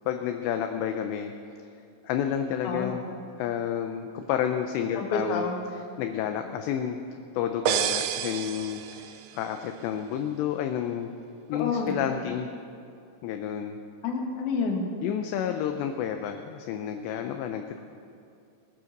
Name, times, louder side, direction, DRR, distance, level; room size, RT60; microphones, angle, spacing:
voice 1, 0.1-1.3 2.0-3.0 3.4-5.5 5.7-7.0 7.3-11.1 11.5-12.5 13.2-13.8 15.0-17.6, left 9 dB, 80° left, 6 dB, 2.5 m, -30 dB
voice 2, 5.0-5.6 11.5-12.0 14.0-14.9, left 4 dB, 55° left, 1 dB, 2.4 m, -29 dB
sound 1, 7.7-9.5, right 10 dB, 85° right, 3.3 m, -29 dB
20.5 x 9.6 x 6.6 m, 2.6 s
omnidirectional pair, 5.8 m